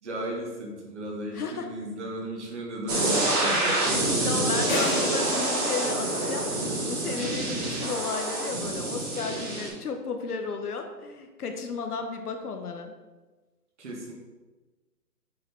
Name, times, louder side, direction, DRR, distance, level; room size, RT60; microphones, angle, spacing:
voice 1, 0.0-4.6 7.4-7.7 13.8-14.1, right 1 dB, 45° right, 0 dB, 1.9 m, -35 dB
voice 2, 1.3-1.7 3.8-12.9, left 4 dB, 65° left, 5 dB, 1.0 m, -34 dB
sound 1, 2.9-9.7, right 2 dB, 25° right, 1.8 m, -27 dB
sound 2, 4.7-6.8, left 1 dB, 30° left, 0.8 m, -33 dB
7.6 x 4.1 x 4.3 m, 1.2 s
hypercardioid pair, 155°, 48 cm